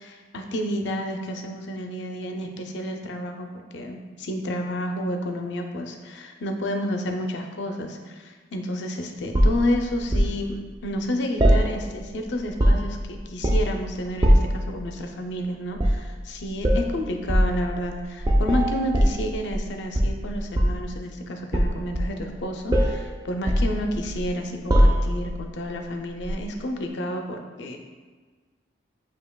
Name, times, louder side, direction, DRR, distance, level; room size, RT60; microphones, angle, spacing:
voice 1, 0.0-3.5 3.7-27.8, left 1 dB, 65° left, 4 dB, 0.5 m, -30 dB
sound 1, 9.3-10.3 11.4-12.1 12.4-13.0 13.4-13.8 14.2-14.6 15.7-16.1 16.6-16.9 17.3-17.5 18.2-19.7 19.9-20.9 21.5-22.4 22.7-23.0 23.5-24.3 24.7-25.3 26.2-26.4, equal, 20° right, 0.3 m, -20 dB
7.1 x 2.8 x 2.2 m, 1.4 s
head